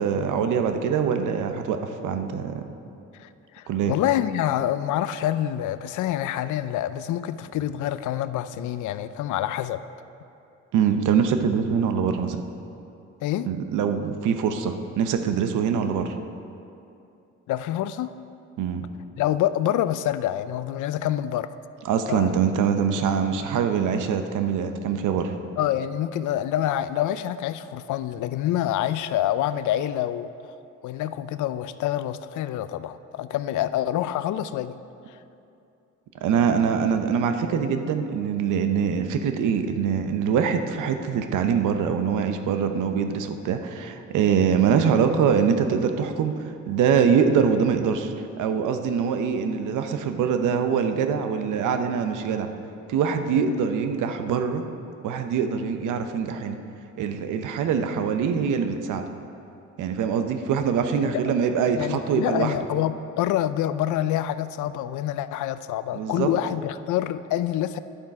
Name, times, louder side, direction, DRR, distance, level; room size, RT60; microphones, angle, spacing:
voice 1, 0.0-2.6 3.7-4.0 10.7-12.4 13.5-16.1 18.6-18.9 21.8-25.4 36.2-52.5 52.9-54.6 55.0-56.6 57.0-59.0 59.8-62.6 65.9-66.3, right 7 dB, 80° right, 7 dB, 0.8 m, -24 dB
voice 2, 3.2-9.8 13.2-13.5 17.5-18.1 19.2-21.6 22.1-22.4 25.6-30.5 30.8-34.8 35.1-35.2 61.0-61.1 61.7-67.8, left 12 dB, 75° left, 14 dB, 0.5 m, -27 dB
10.0 x 7.4 x 4.8 m, 2.7 s
cardioid pair, 90°, 30 cm